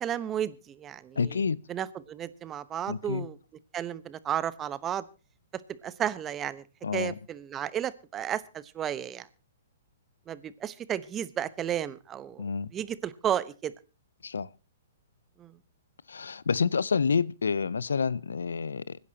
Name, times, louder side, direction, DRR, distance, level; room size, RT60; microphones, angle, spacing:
voice 1, 0.0-1.4 1.7-3.4 3.7-5.0 5.8-6.6 6.9-9.3 10.3-12.4 12.7-13.7 15.4-15.5, right 10 dB, 20° right, 1.0 m, -33 dB
voice 2, 1.2-1.6 2.9-3.3 6.8-7.2 12.4-12.7 14.2-14.5 16.1-19.0, left 5 dB, 85° left, 0.6 m, -28 dB
25.0 x 10.5 x 2.8 m
hypercardioid pair, 130°, 0 cm